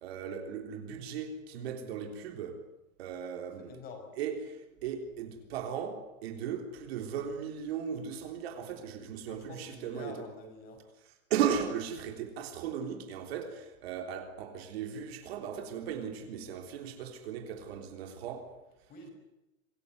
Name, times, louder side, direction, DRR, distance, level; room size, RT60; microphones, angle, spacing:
voice 1, 0.0-2.6 3.0-3.7 4.2-10.1 11.3-18.5, right 8 dB, 45° right, 3.6 m, -36 dB
voice 2, 3.6-4.1 9.2-10.8 18.9-19.1, left 3 dB, 20° left, 5.7 m, -47 dB
27.0 x 19.0 x 9.5 m
supercardioid pair, 180°, 42 cm